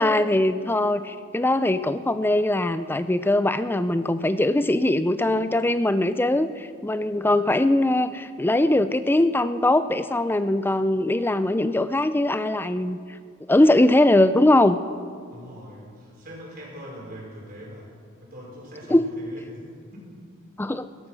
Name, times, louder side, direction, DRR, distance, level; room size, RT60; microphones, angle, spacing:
voice 1, 0.0-13.0 13.5-14.8 18.9-19.1 20.6-20.9, left 1 dB, 10° left, 12 dB, 0.4 m, -21 dB
voice 2, 15.3-20.1, equal, 45° right, -3 dB, 5.2 m, -42 dB
16.0 x 13.0 x 6.1 m, 2.1 s
head